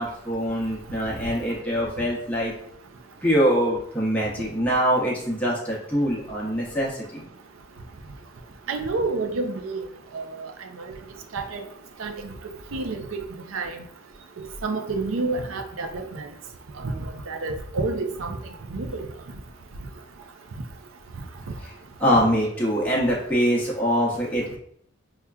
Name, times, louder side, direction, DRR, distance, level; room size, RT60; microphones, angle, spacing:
voice 1, 0.0-2.5 3.2-7.2 21.6-21.7 22.0-24.6, equal, 5° left, -5 dB, 0.7 m, -24 dB
voice 2, 8.7-9.8 10.1-10.3 11.3-11.6 12.0-12.3 12.7-13.2 13.5-13.8 14.6-16.3 16.8-18.4 18.7-19.0 22.1-22.2, right 3 dB, 85° right, 5 dB, 0.5 m, -28 dB
5.5 x 2.3 x 2.3 m, 0.68 s
head